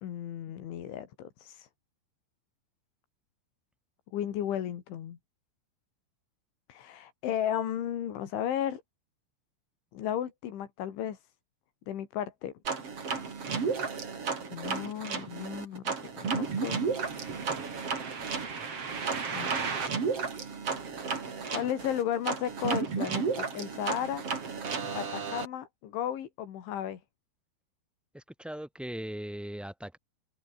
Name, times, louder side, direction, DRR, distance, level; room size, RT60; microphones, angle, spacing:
voice 1, 0.0-1.7 4.1-5.2 6.7-8.8 9.9-11.2 11.9-12.5 14.5-16.9 19.3-19.5 21.1-24.2 24.9-27.0, left 10 dB, 80° left, 5.0 m, -34 dB
sound 1, 12.6-25.5, right 5 dB, 35° right, 3.9 m, -33 dB
voice 2, 28.1-30.0, right 1 dB, ahead, 7.4 m, -39 dB
omnidirectional pair, 5.4 m